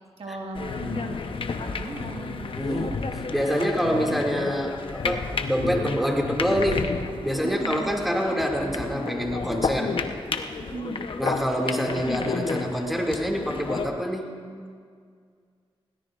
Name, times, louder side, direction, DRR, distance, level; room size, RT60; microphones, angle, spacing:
voice 1, 0.2-3.0 3.9-4.0 7.4-7.9 10.6-11.1, right 3 dB, 75° right, -1 dB, 1.9 m, -37 dB
sound 1, 0.6-13.9, left 4 dB, 60° left, 0.9 m, -31 dB
voice 2, 2.6-2.9 3.3-6.9 7.2-10.0 11.2-14.3, equal, ahead, 0 dB, 2.3 m, -26 dB
20.5 x 17.5 x 2.5 m, 2.1 s
cardioid pair, 60°, 10 cm